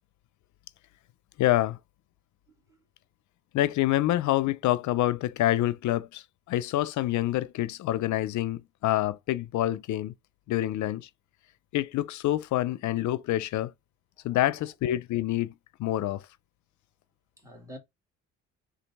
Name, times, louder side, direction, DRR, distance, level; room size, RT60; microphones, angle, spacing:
voice 1, 1.4-1.8 3.5-10.1 10.5-11.1 11.7-13.7 14.2-15.5 15.8-16.2, left 14 dB, 70° left, 0.5 m, -27 dB
voice 2, 14.2-14.7 17.4-17.8, equal, 10° right, 1.8 m, -48 dB
3.8 x 2.4 x 4.6 m
cardioid pair, 90°, 30 cm